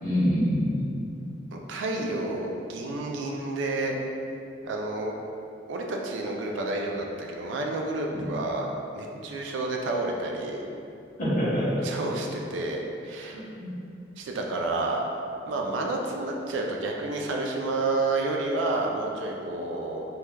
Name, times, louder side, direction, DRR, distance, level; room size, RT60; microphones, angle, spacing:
voice 1, 0.0-1.0 8.1-8.3 11.2-11.8 13.3-13.7, equal, 45° left, -10 dB, 0.8 m, -26 dB
voice 2, 1.5-3.9 4.6-5.1 5.7-10.6 11.8-13.4 14.2-15.0 15.5-20.0, right 2 dB, 80° right, 0 dB, 0.3 m, -30 dB
3.1 x 2.2 x 2.2 m, 2.6 s
head